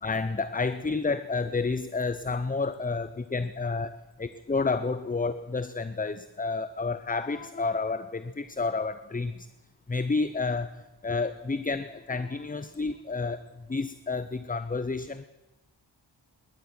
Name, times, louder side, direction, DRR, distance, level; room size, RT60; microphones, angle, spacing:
voice 1, 0.0-9.5 9.9-15.2, left 4 dB, 20° left, 13 dB, 0.6 m, -30 dB
20.5 x 11.0 x 6.1 m, 1.1 s
cardioid pair, 45°, 44 cm